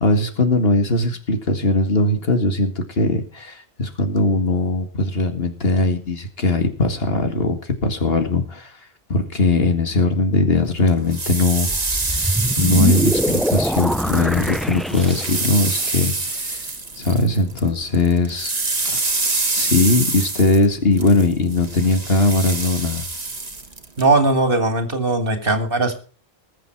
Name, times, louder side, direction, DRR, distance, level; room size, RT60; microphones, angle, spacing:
voice 1, 0.0-8.7 9.1-11.7 12.1-16.6 17.0-18.5 18.8-19.2 19.5-23.1, left 2 dB, 65° left, 6 dB, 2.2 m, -20 dB
sound 1, 10.9-17.7 17.9-24.0, right 3 dB, 40° right, 1.7 m, -26 dB
sound 2, 11.7-15.7, equal, ahead, 0.3 m, -23 dB
voice 2, 24.0-26.0, right 2 dB, 55° right, 7 dB, 2.5 m, -19 dB
20.5 x 7.6 x 4.6 m, 0.40 s
omnidirectional pair, 1.1 m